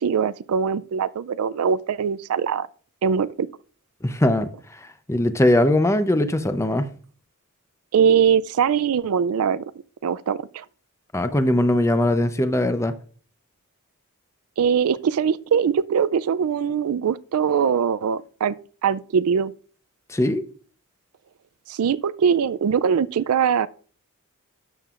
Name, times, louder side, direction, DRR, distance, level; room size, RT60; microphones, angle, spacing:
voice 1, 0.0-2.7 3.0-3.5 7.9-9.7 10.0-10.6 14.6-18.6 18.8-19.5 21.7-23.7, right 7 dB, 75° right, 0.4 m, -22 dB
voice 2, 4.0-6.9 11.1-12.9 20.1-20.4, left 1 dB, 15° left, 0.6 m, -21 dB
12.5 x 7.4 x 2.5 m
head